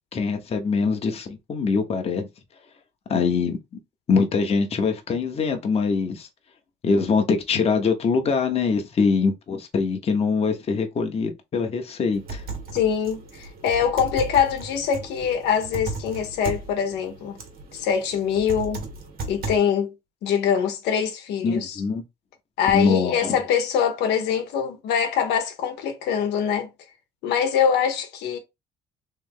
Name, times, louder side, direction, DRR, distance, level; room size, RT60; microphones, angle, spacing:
voice 1, 0.1-2.3 3.1-3.6 4.1-6.3 6.8-12.4 21.4-22.0 22.7-23.4, left 5 dB, 35° left, 0.9 m, -23 dB
sound 1, 12.1-19.6, right 3 dB, 60° right, 1.6 m, -36 dB
voice 2, 12.7-17.4 17.7-18.8 19.3-19.9 20.2-21.8 22.6-26.7 27.2-28.4, left 7 dB, 85° left, 1.0 m, -23 dB
3.3 x 3.0 x 3.6 m
cardioid pair, 110°, 17 cm